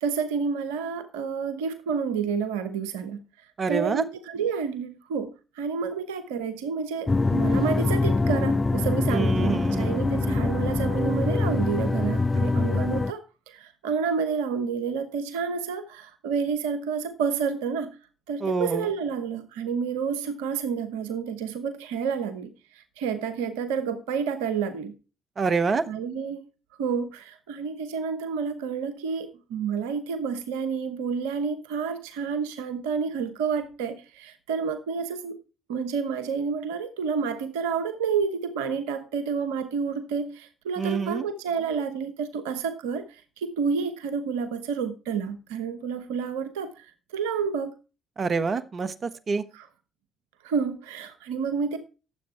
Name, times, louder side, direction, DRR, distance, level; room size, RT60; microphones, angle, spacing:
voice 1, 0.0-3.2 3.7-5.3 5.5-17.9 18.3-24.9 25.9-26.4 26.8-35.4 35.7-47.7 49.5-49.7 50.4-51.8, right 6 dB, 85° right, 0.9 m, -29 dB
voice 2, 3.6-4.0 9.1-10.1 18.4-18.9 25.4-25.8 40.8-41.3 48.2-49.4, right 4 dB, 45° right, 1.2 m, -27 dB
sound 1, 7.1-13.1, left 3 dB, 25° left, 0.4 m, -24 dB
13.5 x 7.8 x 4.4 m
hypercardioid pair, 50°, 0 cm